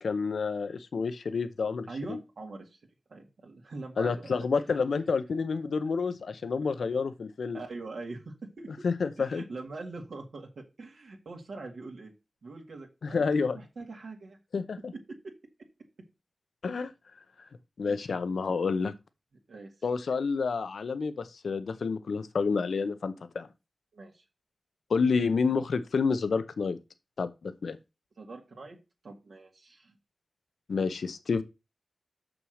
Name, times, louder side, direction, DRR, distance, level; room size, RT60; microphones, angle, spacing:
voice 1, 0.0-2.2 4.0-7.6 8.8-9.4 13.0-13.6 14.5-14.9 16.6-16.9 17.8-18.9 19.8-23.5 24.9-26.8 27.2-27.8 30.7-31.4, left 5 dB, 90° left, 0.7 m, -29 dB
voice 2, 1.9-2.8 3.1-4.5 6.6-6.7 7.5-8.7 9.2-12.1 12.4-14.4 15.2-15.3 17.8-18.0 19.5-19.7 23.9-24.2 28.2-28.8 29.0-29.9, right 3 dB, 85° right, 2.1 m, -43 dB
6.3 x 6.1 x 6.4 m
cardioid pair, 50°, 0 cm